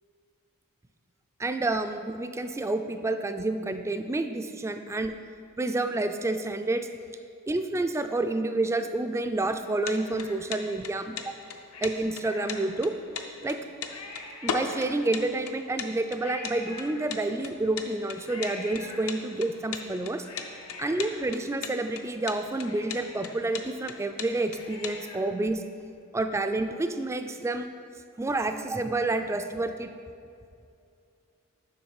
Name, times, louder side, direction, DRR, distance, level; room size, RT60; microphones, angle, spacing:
voice 1, 1.4-5.1 5.6-6.9 7.5-11.2 11.8-12.9 13.4-13.6 14.4-20.3 20.8-25.6 26.1-27.7 28.2-29.9, right 2 dB, 10° right, 7 dB, 0.3 m, -29 dB
Cat, 9.4-10.8 11.7-13.1 13.5-13.6 13.8-15.4 16.2-17.6 18.2-19.5 20.0-22.0 22.3-22.4 22.7-25.5 25.8-25.9, left 3 dB, 85° left, 1.1 m, -45 dB
sound 1, 9.6-25.0, left 6 dB, 65° left, 0.6 m, -37 dB
7.2 x 5.8 x 4.7 m, 2.5 s
head